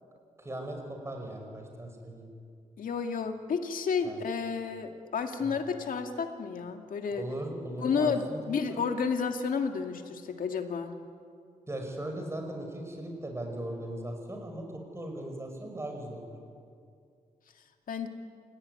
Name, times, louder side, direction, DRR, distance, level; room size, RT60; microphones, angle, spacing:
voice 1, 0.4-2.3 4.0-4.2 5.4-5.5 7.1-8.8 11.7-16.3, right 1 dB, 20° right, 3 dB, 5.8 m, -38 dB
voice 2, 2.8-7.2 7.8-10.9 17.9-18.1, left 5 dB, 80° left, 5 dB, 2.2 m, -31 dB
29.0 x 18.0 x 9.8 m, 2.3 s
wide cardioid pair, 135°, 14 cm